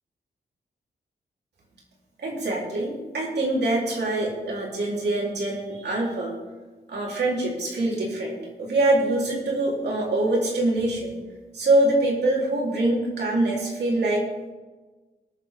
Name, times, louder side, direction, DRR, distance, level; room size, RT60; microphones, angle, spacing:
voice 1, 2.2-6.3 6.9-11.1 11.5-14.2, right 2 dB, 75° right, -3 dB, 3.8 m, -24 dB
21.0 x 7.1 x 3.7 m, 1.3 s
wide cardioid pair, 100°, 17 cm